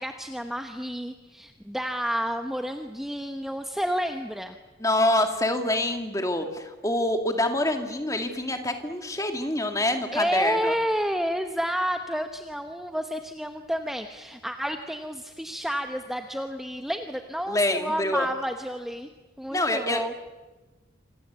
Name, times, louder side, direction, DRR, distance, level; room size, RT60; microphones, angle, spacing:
voice 1, 0.0-4.6 10.1-19.1 19.4-20.1, equal, ahead, 5 dB, 1.0 m, -30 dB
voice 2, 4.8-10.7 17.5-18.3 19.5-20.1, left 1 dB, 15° left, 5 dB, 2.3 m, -26 dB
27.5 x 26.0 x 8.2 m, 1.2 s
head